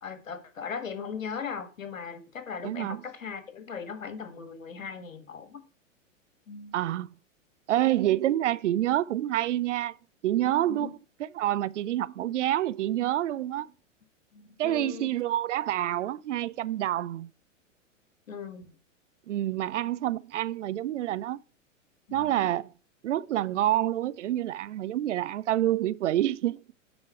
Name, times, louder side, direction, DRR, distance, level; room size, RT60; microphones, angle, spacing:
voice 1, 0.0-5.6 6.5-6.8 10.7-10.9 14.3-15.1 18.3-18.6 22.1-22.6, left 6 dB, 80° left, 1.7 m, -39 dB
voice 2, 2.6-3.0 6.7-7.1 7.7-9.9 10.2-13.7 14.6-17.3 19.3-21.4 22.1-22.7 23.0-26.6, right 13 dB, 65° right, 0.5 m, -27 dB
9.5 x 5.2 x 4.4 m
figure-of-eight pair, 105°, 39 cm